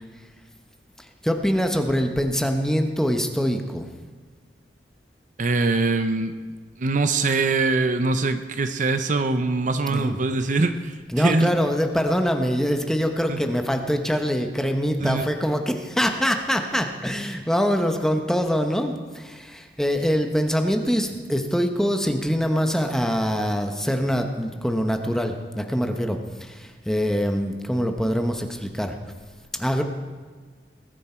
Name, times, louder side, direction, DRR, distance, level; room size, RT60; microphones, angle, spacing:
voice 1, 1.0-3.9 9.9-10.2 11.1-29.0 29.6-29.8, equal, 5° left, 5 dB, 1.0 m, -24 dB
voice 2, 5.4-6.3 6.8-11.5 13.3-13.4 15.0-15.3, right 3 dB, 45° right, 9 dB, 0.7 m, -23 dB
20.0 x 9.8 x 4.5 m, 1.5 s
head